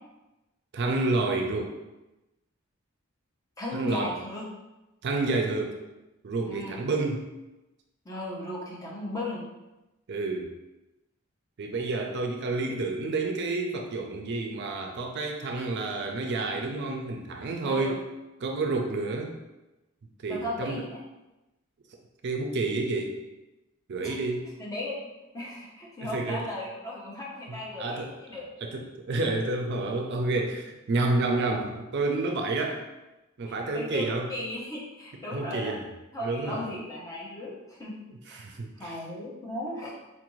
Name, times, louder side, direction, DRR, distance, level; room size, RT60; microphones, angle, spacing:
voice 1, 0.7-1.8 3.7-4.1 5.0-5.8 6.2-7.3 10.1-10.5 11.6-18.0 18.4-19.3 20.2-20.8 22.2-23.2 23.9-24.5 26.0-26.4 27.5-32.8 33.4-34.3 35.3-35.9 36.2-36.7 38.3-38.9, right 2 dB, 55° right, 3 dB, 0.4 m, -29 dB
voice 2, 3.6-4.5 6.5-6.8 8.0-9.4 17.6-18.0 20.3-21.0 23.9-24.2 24.6-25.0 25.3-28.4 33.5-35.8 36.1-38.0 38.3-38.5 38.8-39.9, left 1 dB, 15° left, -4 dB, 0.8 m, -36 dB
4.3 x 2.5 x 3.0 m, 1.0 s
head